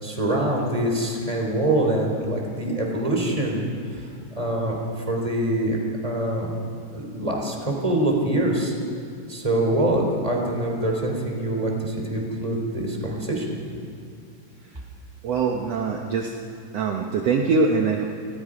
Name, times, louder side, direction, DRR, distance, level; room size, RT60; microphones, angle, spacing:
voice 1, 0.0-3.7 3.9-4.8 5.1-6.5 6.9-8.7 9.3-13.6, right 1 dB, 10° right, 1 dB, 3.4 m, -24 dB
voice 2, 15.2-16.3 16.7-18.1, right 4 dB, 65° right, 1 dB, 2.1 m, -23 dB
29.5 x 21.0 x 5.1 m, 2.4 s
omnidirectional pair, 3.5 m